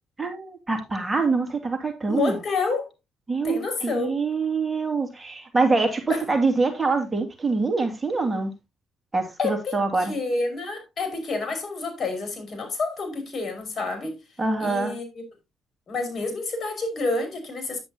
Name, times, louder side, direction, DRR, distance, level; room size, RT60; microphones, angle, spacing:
voice 1, 0.2-2.4 3.3-8.5 9.1-10.1 14.4-14.9, right 3 dB, 20° right, 2.4 m, -25 dB
voice 2, 2.1-2.9 3.4-4.2 6.1-6.2 9.4-9.7 10.0-14.2 14.6-15.2 15.9-17.8, left 3 dB, 45° left, 5.4 m, -28 dB
10.0 x 9.1 x 2.8 m
cardioid pair, 90°, 0 cm